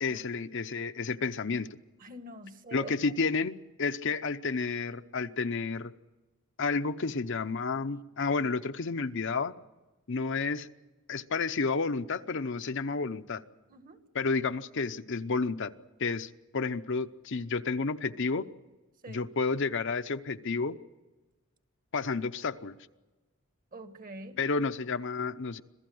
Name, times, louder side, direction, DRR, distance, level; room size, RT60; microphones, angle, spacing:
voice 1, 0.0-1.7 2.7-5.9 6.6-9.5 10.1-10.7 11.1-13.4 14.1-15.7 16.0-18.5 19.1-20.8 21.9-22.7 24.4-25.6, left 4 dB, 65° left, 10 dB, 0.8 m, -31 dB
voice 2, 2.0-2.9 13.7-14.0 19.0-19.3 23.7-24.4, right 2 dB, 45° right, 9 dB, 1.6 m, -45 dB
26.5 x 16.0 x 7.8 m, 1.2 s
head